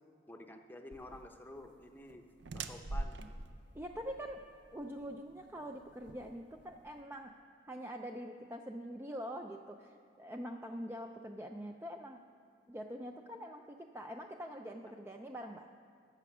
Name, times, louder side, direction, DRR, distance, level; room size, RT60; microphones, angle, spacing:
voice 1, 0.3-2.2 2.5-3.2, left 1 dB, 10° left, 5 dB, 0.7 m, -50 dB
sound 1, 0.9-7.0, right 2 dB, 65° right, 0.6 m, -45 dB
voice 2, 3.7-4.4 4.7-7.3 7.7-12.2 12.7-15.7, equal, 10° right, 3 dB, 0.3 m, -44 dB
15.0 x 6.9 x 6.0 m, 2.5 s
head